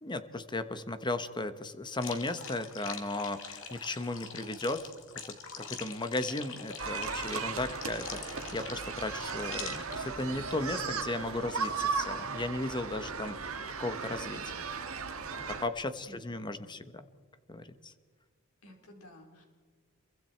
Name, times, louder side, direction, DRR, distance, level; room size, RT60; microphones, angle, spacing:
voice 1, 0.0-14.6 15.5-17.1 17.5-17.9, left 2 dB, 20° left, 10 dB, 1.1 m, -36 dB
sound 1, 2.0-10.0, left 6 dB, 65° left, 2.5 m, -44 dB
sound 2, 6.8-15.7, right 5 dB, 70° right, 1.9 m, -36 dB
voice 2, 16.0-16.5 18.6-19.4, left 1 dB, 90° left, 2 dB, 4.3 m, -53 dB
27.5 x 23.5 x 4.5 m, 1.5 s
head